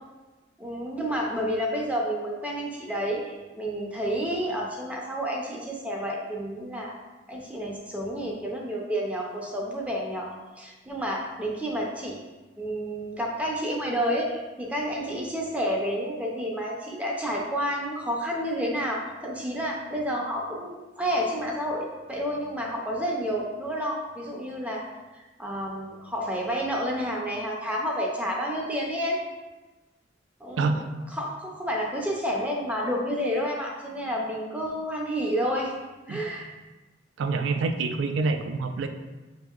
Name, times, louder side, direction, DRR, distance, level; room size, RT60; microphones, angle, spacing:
voice 1, 0.6-7.0 7.3-12.2 12.6-24.8 25.2-29.2 30.4-30.8 31.1-35.7 36.1-36.5 37.3-37.4, equal, 5° right, -2 dB, 0.5 m, -30 dB
voice 2, 37.2-38.9, right 4 dB, 80° right, 7 dB, 0.3 m, -26 dB
5.9 x 2.7 x 2.4 m, 1.2 s
head